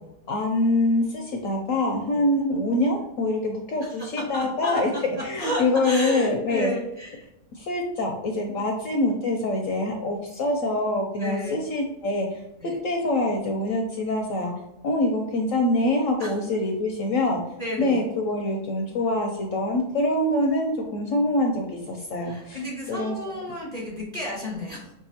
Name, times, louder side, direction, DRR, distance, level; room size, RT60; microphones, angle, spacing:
voice 1, 0.3-6.7 7.5-12.4 12.8-14.5 14.8-17.4 17.8-22.6 22.9-23.2, left 2 dB, 70° left, 2 dB, 0.8 m, -25 dB
voice 2, 4.3-4.8 5.1-7.3 8.5-8.7 11.2-11.6 12.6-12.8 16.2-16.3 17.6-18.1 22.2-24.9, equal, 25° right, -4 dB, 1.2 m, -32 dB
5.5 x 2.5 x 2.7 m, 0.90 s
omnidirectional pair, 1.7 m